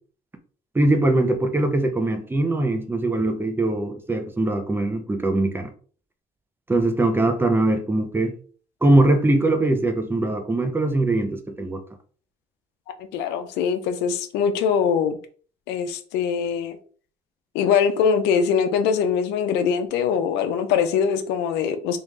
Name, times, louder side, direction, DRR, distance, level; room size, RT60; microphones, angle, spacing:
voice 1, 0.7-5.7 6.7-8.3 8.8-11.8, right 2 dB, 15° right, 0.6 m, -21 dB
voice 2, 13.0-15.2 15.7-16.8 17.5-22.0, left 7 dB, 90° left, 0.5 m, -22 dB
3.4 x 2.5 x 3.2 m
cardioid pair, 110°, 17 cm